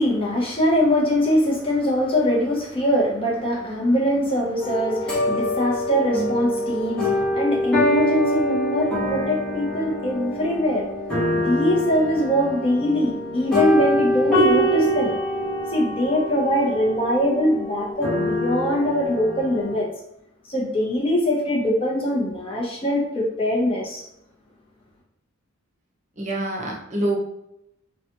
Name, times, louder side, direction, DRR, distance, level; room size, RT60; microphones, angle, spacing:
voice 1, 0.0-10.9 11.3-15.1 15.7-19.9 20.5-24.0, equal, 25° left, -4 dB, 0.7 m, -22 dB
sound 1, 4.6-19.7, equal, 5° left, 1.2 m, -25 dB
voice 2, 26.2-27.2, right 1 dB, 35° right, -1 dB, 0.8 m, -26 dB
3.9 x 2.3 x 2.9 m, 0.81 s
head